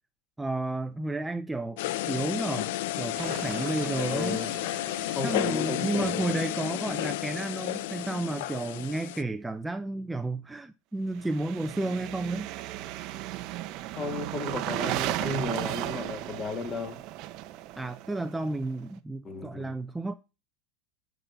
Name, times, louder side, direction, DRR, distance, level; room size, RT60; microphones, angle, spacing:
voice 1, 0.4-4.4 5.2-12.5 17.8-20.1, right 2 dB, 10° right, 0.7 m, -32 dB
sound 1, 1.8-9.2, left 16 dB, 70° left, 0.4 m, -32 dB
sound 2, 3.1-7.0 11.1-18.8, right 15 dB, 55° right, 0.9 m, -36 dB
voice 2, 4.1-4.5 5.1-6.3 14.0-17.0 19.2-19.7, left 3 dB, 30° left, 2.2 m, -34 dB
9.7 x 4.1 x 7.2 m
hypercardioid pair, 95°, 0 cm